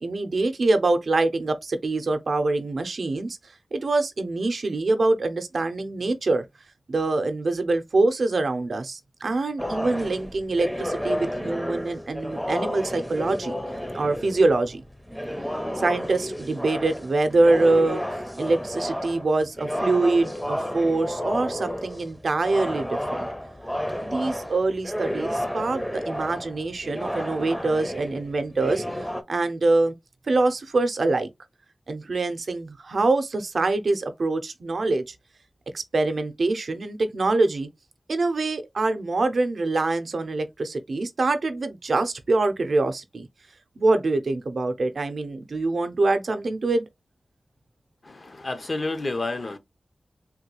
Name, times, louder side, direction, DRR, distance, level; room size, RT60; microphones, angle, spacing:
voice 1, 0.0-3.4 3.7-6.4 6.9-13.5 13.9-14.8 15.7-18.0 18.4-23.3 24.0-28.8 29.3-29.9 30.3-31.3 31.9-35.0 35.7-37.7 38.1-43.3 43.8-46.9, right 2 dB, 80° right, 0.5 m, -24 dB
sound 1, 9.6-29.2, equal, 5° left, 0.5 m, -31 dB
voice 2, 48.0-49.6, left 2 dB, 55° left, 0.6 m, -30 dB
3.6 x 2.3 x 2.9 m
wide cardioid pair, 70°, 0 cm